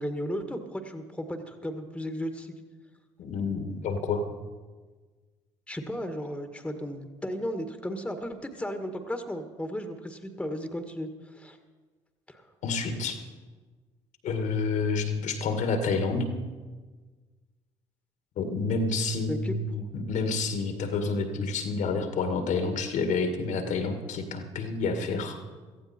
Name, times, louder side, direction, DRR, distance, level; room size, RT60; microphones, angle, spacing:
voice 1, 0.0-2.5 5.7-11.6 12.3-12.5 19.3-19.6, equal, 5° left, 7 dB, 1.8 m, -35 dB
voice 2, 3.2-4.3 12.6-13.2 14.2-16.3 18.4-25.4, left 4 dB, 60° left, 7 dB, 2.0 m, -29 dB
17.0 x 14.5 x 4.4 m, 1.4 s
hypercardioid pair, 55°, 14 cm